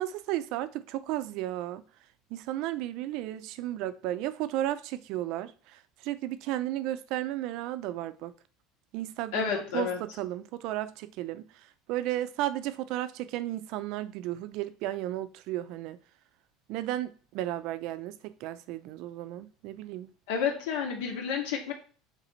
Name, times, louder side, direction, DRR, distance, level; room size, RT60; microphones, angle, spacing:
voice 1, 0.0-1.8 2.3-8.3 8.9-11.5 11.9-16.0 16.7-20.1, right 14 dB, 50° right, 0.5 m, -34 dB
voice 2, 9.3-10.0 20.3-21.7, left 6 dB, 85° left, 2.1 m, -30 dB
7.8 x 3.3 x 4.4 m
cardioid pair, 175°, 0 cm